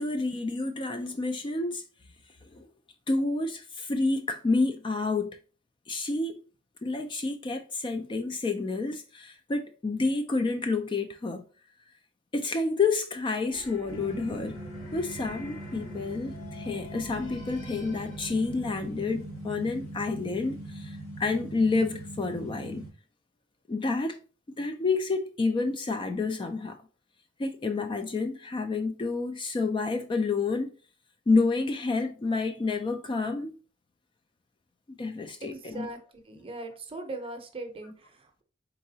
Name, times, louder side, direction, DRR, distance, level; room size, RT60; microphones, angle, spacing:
voice 1, 0.0-1.8 2.5-2.7 3.1-5.3 5.9-6.4 6.8-11.4 12.3-14.6 14.9-22.8 23.7-24.2 24.6-26.8 27.4-30.7 31.3-33.6 35.0-35.9, left 3 dB, 25° left, 0.3 m, -29 dB
sound 1, 13.5-20.3, left 1 dB, 40° left, 1.0 m, -47 dB
sound 2, 13.9-22.9, right 1 dB, 85° left, 1.6 m, -41 dB
voice 2, 35.4-36.0 36.3-37.9, right 2 dB, 30° right, 0.7 m, -39 dB
4.0 x 3.6 x 2.7 m
head